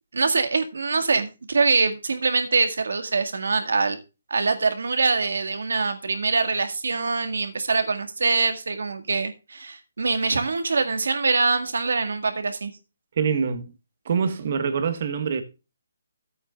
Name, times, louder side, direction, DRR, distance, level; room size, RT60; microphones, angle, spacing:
voice 1, 0.1-4.0 4.3-12.7, right 4 dB, 85° right, 1.9 m, -24 dB
voice 2, 13.2-13.7 14.0-15.4, right 6 dB, 40° right, 1.5 m, -25 dB
13.5 x 8.7 x 2.4 m
hypercardioid pair, 175°, 0 cm